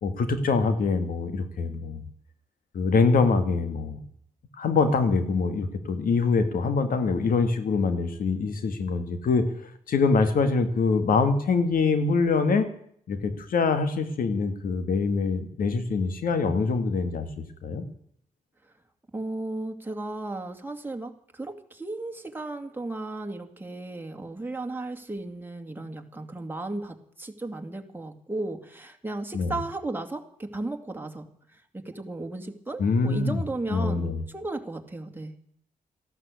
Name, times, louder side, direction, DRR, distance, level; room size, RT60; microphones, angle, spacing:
voice 1, 0.0-2.0 2.7-4.0 4.6-9.5 9.9-12.7 13.1-17.3 17.6-17.8 29.3-29.5 32.8-33.4 33.7-34.2, left 4 dB, 75° left, 10 dB, 1.9 m, -24 dB
voice 2, 19.1-35.3, right 2 dB, 15° right, 4 dB, 2.4 m, -35 dB
14.5 x 11.5 x 8.4 m, 0.67 s
cardioid pair, 60°, 15 cm